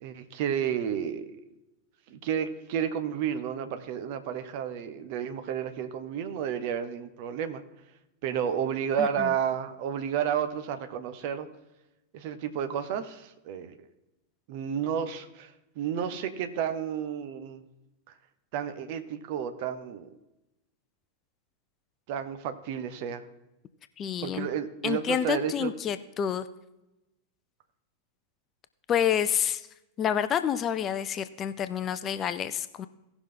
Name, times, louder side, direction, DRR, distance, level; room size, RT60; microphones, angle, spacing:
voice 1, 0.0-1.3 2.1-7.6 8.2-11.5 12.1-13.9 14.5-17.6 18.5-20.1 22.1-23.2 24.2-25.7, right 8 dB, 45° right, 10 dB, 0.9 m, -31 dB
voice 2, 9.0-9.3 24.0-24.5 24.8-26.5 28.9-29.7 30.0-32.9, left 9 dB, 30° left, 12 dB, 0.5 m, -28 dB
17.0 x 6.0 x 3.9 m, 0.95 s
figure-of-eight pair, 90°, 0 cm